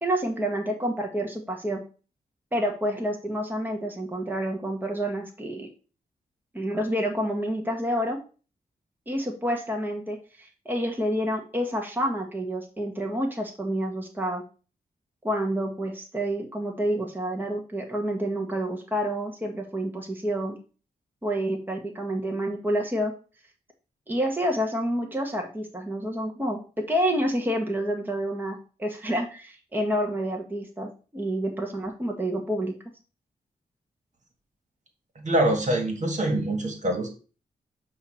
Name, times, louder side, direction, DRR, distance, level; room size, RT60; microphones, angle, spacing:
voice 1, 0.0-1.8 2.5-5.7 6.5-8.2 9.1-14.4 15.2-20.6 21.2-23.1 24.1-32.7, equal, 10° right, 2 dB, 1.4 m, -28 dB
voice 2, 35.2-37.1, right 1 dB, 50° right, 3 dB, 1.8 m, -24 dB
8.2 x 2.8 x 5.6 m, 0.36 s
cardioid pair, 70°, 16 cm